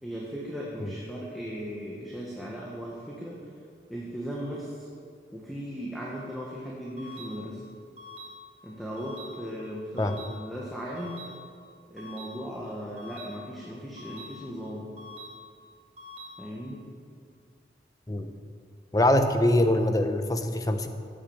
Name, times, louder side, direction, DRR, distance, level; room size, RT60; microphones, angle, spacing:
voice 1, 0.0-3.5 3.9-4.9 5.3-7.6 8.6-11.3 11.9-14.9 16.4-16.8, equal, ahead, -5 dB, 1.6 m, -37 dB
sound 1, 7.0-7.3 8.0-8.3 9.0-9.3 10.0-10.3 11.0-11.3 12.0-12.3 13.0-13.3 14.0-14.3 15.0-15.3 16.0-16.3, left 1 dB, 40° right, 2.8 m, -44 dB
voice 2, 18.9-20.9, left 1 dB, 20° left, 7 dB, 0.9 m, -24 dB
16.5 x 8.8 x 7.3 m, 2.2 s
head